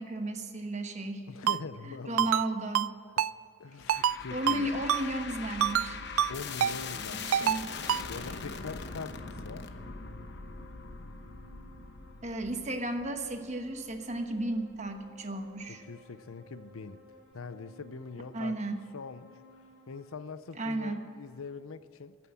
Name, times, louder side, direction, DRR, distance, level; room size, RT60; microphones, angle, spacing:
voice 1, 0.0-1.3 2.1-3.0 4.3-6.0 7.1-7.6 12.2-15.8 18.3-18.8 20.5-21.1, right 1 dB, 35° right, 6 dB, 1.1 m, -34 dB
voice 2, 1.3-2.3 3.2-3.3 3.6-4.7 6.3-7.6 8.1-9.7 15.7-17.0 17.3-18.6 18.9-19.4 19.9-22.2, left 4 dB, 85° left, 14 dB, 0.6 m, -43 dB
Ringtone, 1.5-1.6 2.2-2.5 2.7-2.9 3.2-3.3 3.9-4.2 4.5-4.6 4.9-5.0 5.6-5.9 6.2-6.3 6.6-6.7 7.3-7.6 7.9-8.0, right 9 dB, 85° right, 0.4 m, -26 dB
sound 1, 3.8-15.1, left 5 dB, 55° left, 1.0 m, -42 dB
sound 2, 3.8-20.1, left 1 dB, 15° left, 4.3 m, -57 dB
15.0 x 9.2 x 8.4 m, 2.2 s
head